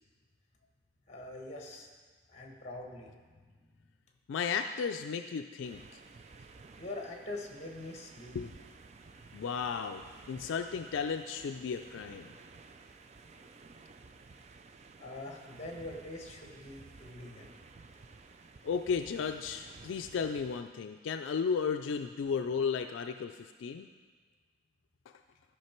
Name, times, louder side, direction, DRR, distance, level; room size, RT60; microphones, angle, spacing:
voice 1, 1.1-1.9 2.3-3.5 6.8-8.5 15.0-17.6, left 2 dB, 35° left, 1 dB, 1.3 m, -44 dB
voice 2, 4.3-6.0 8.3-8.5 9.3-12.3 18.6-23.9 25.1-25.2, left 6 dB, 80° left, 7 dB, 0.3 m, -34 dB
sound 1, 5.6-20.6, right 4 dB, 35° right, 0.4 m, -54 dB
12.5 x 5.8 x 4.4 m, 1.5 s
head